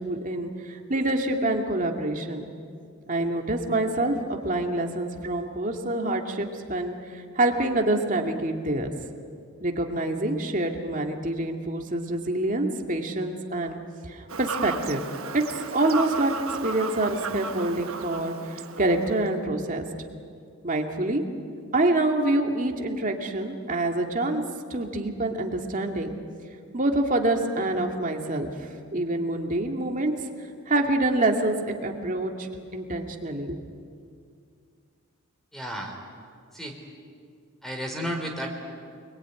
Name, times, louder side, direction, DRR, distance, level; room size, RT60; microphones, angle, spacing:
voice 1, 0.0-2.5 3.1-8.9 9.6-13.8 14.1-15.0 15.3-16.3 16.6-19.8 20.6-21.2 21.7-24.4 24.7-26.1 26.7-30.1 30.7-33.6, right 2 dB, 35° right, 3 dB, 2.4 m, -26 dB
Fowl / Bird vocalization bird call bird song, 14.3-19.3, right 5 dB, 70° right, 1.3 m, -35 dB
voice 2, 35.5-36.0 36.5-36.8 37.6-38.5, equal, ahead, 2 dB, 3.7 m, -32 dB
28.5 x 21.5 x 9.6 m, 2.3 s
head